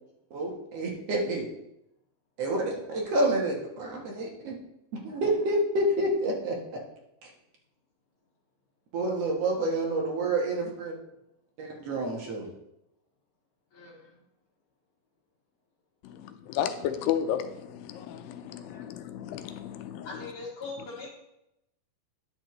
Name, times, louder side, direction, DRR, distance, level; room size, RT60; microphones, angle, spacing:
voice 1, 0.3-1.5 2.4-4.6 5.0-6.8 7.2-7.3 8.9-10.9 11.6-12.5, right 1 dB, 55° right, 2.0 m, -28 dB
voice 2, 13.7-14.1 18.7-18.8 20.0-21.1, left 3 dB, 50° left, 3.1 m, -41 dB
voice 3, 16.0-20.3 20.8-20.9, left 10 dB, 85° left, 2.3 m, -33 dB
10.5 x 6.5 x 3.1 m
omnidirectional pair, 4.1 m